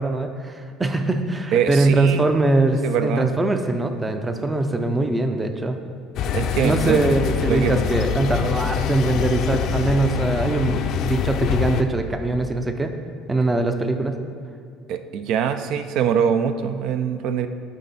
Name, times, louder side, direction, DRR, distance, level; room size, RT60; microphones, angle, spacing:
voice 1, 0.0-5.8 6.6-12.9 13.3-14.2, right 2 dB, 15° right, 6 dB, 0.5 m, -22 dB
voice 2, 1.5-2.2 2.8-3.3 6.3-7.0 7.5-7.7 14.9-17.5, right 8 dB, 65° right, 9 dB, 0.4 m, -23 dB
sound 1, 6.2-11.8, left 8 dB, 60° left, 0.4 m, -24 dB
9.2 x 3.7 x 4.1 m, 2.3 s
supercardioid pair, 100°, 0 cm